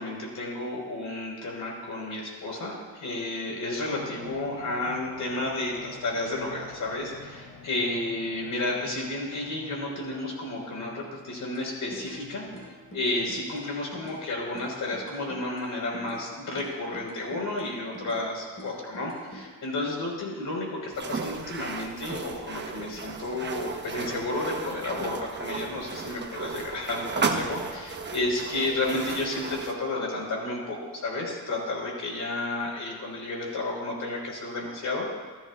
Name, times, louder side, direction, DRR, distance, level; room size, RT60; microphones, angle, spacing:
voice 1, 0.0-12.4 12.9-35.1, left 2 dB, 55° left, -1 dB, 4.5 m, -32 dB
sound 1, 3.9-16.8 17.3-17.4, left 3 dB, 75° left, 3.0 m, -50 dB
sound 2, 11.5-12.2 12.5-14.2 14.5-16.3 16.6-18.3 18.6-19.5, right 1 dB, 35° left, 5.2 m, -45 dB
sound 3, 20.9-29.8, right 4 dB, 30° right, 1.0 m, -34 dB
27.0 x 14.0 x 2.4 m, 1.5 s
cardioid pair, 145°, 37 cm